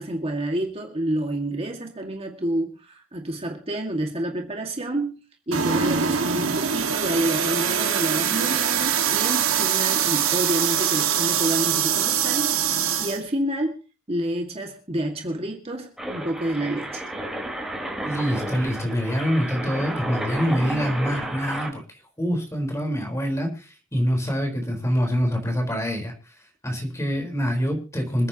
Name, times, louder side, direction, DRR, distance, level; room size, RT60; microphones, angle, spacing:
voice 1, 0.0-5.2 5.5-13.8 14.1-17.0, right 1 dB, 30° right, 2.1 m, -28 dB
sound 1, 5.5-13.2, right 8 dB, 90° right, 1.9 m, -23 dB
sound 2, 16.0-21.7, right 1 dB, 5° right, 4.4 m, -32 dB
voice 2, 18.0-21.8 22.2-26.1 26.6-28.3, equal, 15° left, 4.4 m, -25 dB
27.0 x 9.5 x 3.0 m
head